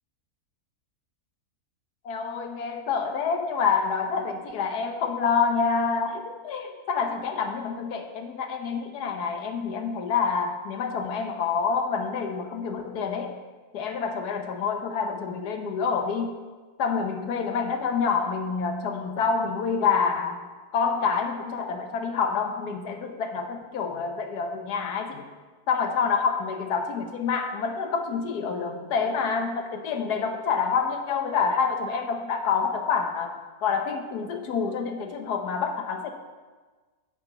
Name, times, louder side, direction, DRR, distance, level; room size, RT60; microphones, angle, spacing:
voice 1, 2.0-13.3 13.7-16.4 16.8-20.5 20.7-25.2 25.7-36.1, left 5 dB, 80° left, 5 dB, 1.5 m, -27 dB
9.9 x 5.1 x 6.7 m, 1.4 s
omnidirectional pair, 1.7 m